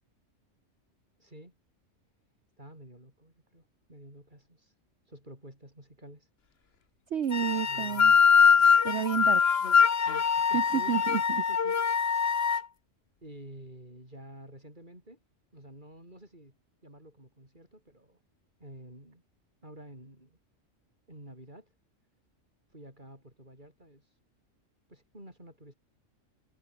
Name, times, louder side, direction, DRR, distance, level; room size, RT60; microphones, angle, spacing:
voice 1, 1.2-1.5 2.6-4.7 5.1-6.3 7.5-8.2 10.1-10.9 11.3-11.7 13.2-15.2 15.5-16.6 16.8-18.2 18.6-19.2 19.6-20.4 21.1-21.7 22.7-24.1 24.9-25.7, right 1 dB, 35° right, 8.3 m, -50 dB
voice 2, 7.1-8.1 8.8-9.4 10.5-11.4, right 8 dB, 60° right, 1.2 m, -30 dB
sound 1, 7.3-12.6, left 6 dB, 55° left, 1.4 m, -23 dB
omnidirectional pair, 1.3 m